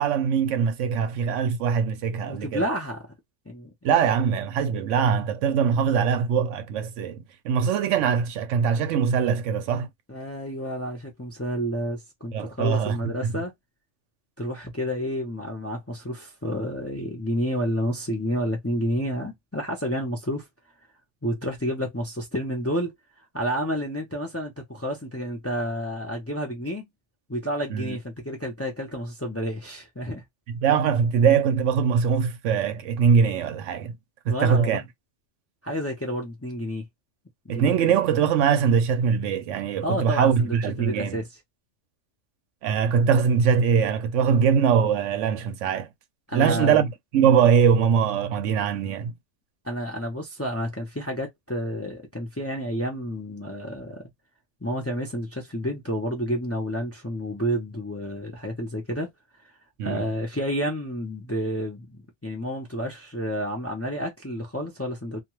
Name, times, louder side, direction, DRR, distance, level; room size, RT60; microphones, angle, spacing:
voice 1, 0.0-2.6 3.8-9.9 12.3-13.4 27.7-28.0 30.5-34.0 34.3-34.8 37.5-41.2 42.6-45.9 46.3-46.9 47.1-49.1 59.8-60.1, right 7 dB, 85° right, 0.9 m, -22 dB
voice 2, 2.3-3.0 3.5-3.7 10.1-13.5 14.4-20.5 21.2-22.9 23.3-26.9 27.3-30.2 34.3-34.8 35.6-36.9 37.4-38.0 39.8-41.3 46.3-46.9 49.6-54.1 54.6-59.1 59.8-65.2, equal, 15° left, 0.5 m, -30 dB
2.3 x 2.3 x 3.0 m
omnidirectional pair, 1.3 m